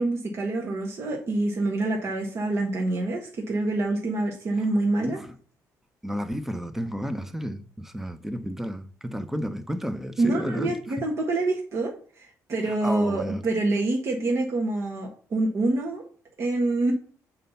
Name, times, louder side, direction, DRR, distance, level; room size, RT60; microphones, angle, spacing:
voice 1, 0.0-5.2 10.2-16.0 16.4-16.9, right 2 dB, 45° right, 1.3 m, -26 dB
voice 2, 5.0-5.3 6.0-10.7 12.6-13.4, equal, 5° right, 0.7 m, -32 dB
7.5 x 4.2 x 5.5 m
cardioid pair, 135°, 6 cm